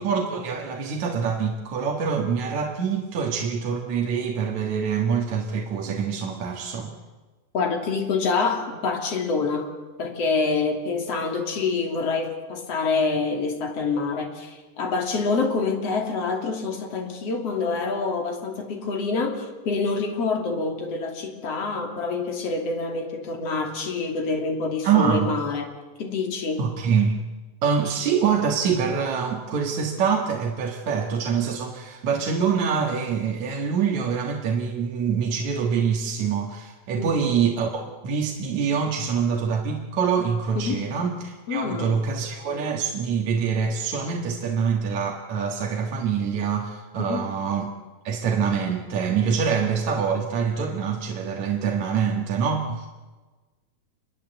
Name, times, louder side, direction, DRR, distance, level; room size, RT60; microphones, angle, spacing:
voice 1, 0.0-6.9 24.8-25.3 26.6-27.2 27.6-47.7 48.0-52.9, right 6 dB, 70° right, 1 dB, 3.0 m, -25 dB
voice 2, 7.5-9.7 10.0-25.7 26.0-26.7 37.0-37.1 40.6-40.8 41.5-42.0 47.0-47.3, left 4 dB, 55° left, 3 dB, 3.9 m, -26 dB
27.0 x 23.0 x 8.0 m, 1.3 s
omnidirectional pair, 3.4 m